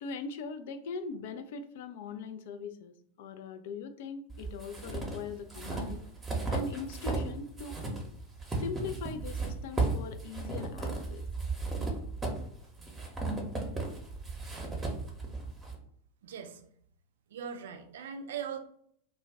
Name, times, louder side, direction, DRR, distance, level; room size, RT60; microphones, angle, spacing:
voice 1, 0.0-6.0 6.5-7.8 8.6-11.3, left 4 dB, 55° left, 8 dB, 0.3 m, -41 dB
sound 1, 4.3-7.3 7.6-15.7, right 3 dB, 15° right, 0.7 m, -35 dB
voice 2, 16.2-16.6 17.3-18.6, right 7 dB, 65° right, 5 dB, 0.3 m, -39 dB
2.3 x 2.1 x 3.4 m, 0.65 s
figure-of-eight pair, 90°, 0 cm